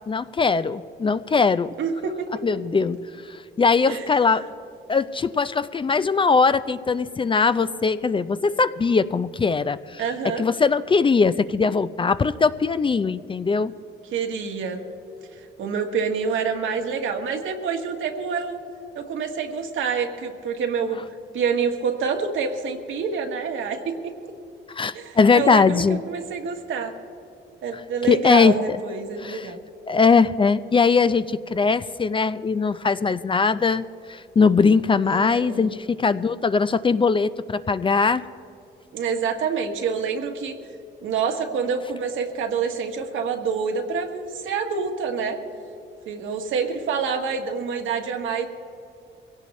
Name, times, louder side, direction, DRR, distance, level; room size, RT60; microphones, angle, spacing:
voice 1, 0.1-1.7 2.4-3.0 3.3-4.5 4.9-10.0 10.4-13.7 24.7-26.0 28.1-28.8 29.2-29.5 29.9-38.2, left 4 dB, 25° left, 14 dB, 0.4 m, -20 dB
voice 2, 1.8-2.5 3.8-4.1 10.0-10.4 14.1-14.8 15.3-18.6 18.9-21.0 21.3-24.1 24.9-26.9 27.6-29.6 35.0-35.7 38.9-40.6 41.0-45.4 46.1-48.5, right 6 dB, 75° right, 4 dB, 1.5 m, -27 dB
23.0 x 17.0 x 3.2 m, 2.8 s
cardioid pair, 90°, 20 cm